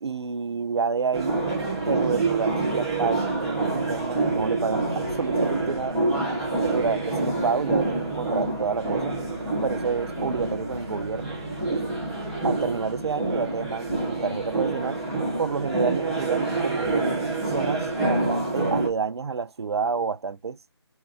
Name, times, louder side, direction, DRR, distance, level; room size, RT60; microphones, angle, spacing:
voice 1, 0.0-1.4 1.8-6.0 6.6-9.2 9.6-11.4 11.7-11.9 12.4-17.1 17.5-20.6, right 5 dB, 70° right, 0.4 m, -29 dB
sound 1, 1.1-18.9, right 2 dB, ahead, 0.3 m, -27 dB
3.6 x 2.3 x 4.4 m
figure-of-eight pair, 155°, 14 cm